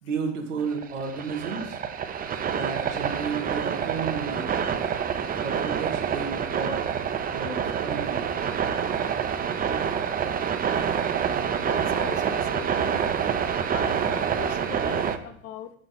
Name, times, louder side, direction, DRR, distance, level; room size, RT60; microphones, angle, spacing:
voice 1, 0.0-1.8 2.4-4.5 5.4-6.8 7.3-8.2, right 5 dB, 85° right, 3 dB, 1.6 m, -32 dB
sound 1, 0.6-15.2, right 7 dB, 25° right, 0.6 m, -27 dB
voice 2, 11.7-13.1 13.7-15.7, left 11 dB, 40° left, 11 dB, 0.9 m, -40 dB
10.5 x 4.0 x 4.0 m, 0.67 s
hypercardioid pair, 90°, 36 cm